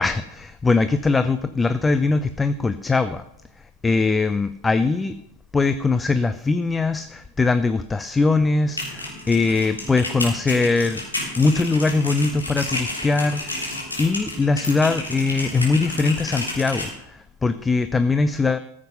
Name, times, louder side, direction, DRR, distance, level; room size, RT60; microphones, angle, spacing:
voice 1, 0.0-3.2 3.8-5.2 5.5-11.0 11.4-18.6, left 3 dB, 10° left, 12 dB, 0.5 m, -21 dB
sound 1, 8.6-16.9, left 1 dB, 80° left, 3.4 m, -31 dB
14.5 x 7.4 x 5.5 m, 0.80 s
figure-of-eight pair, 90°, 0 cm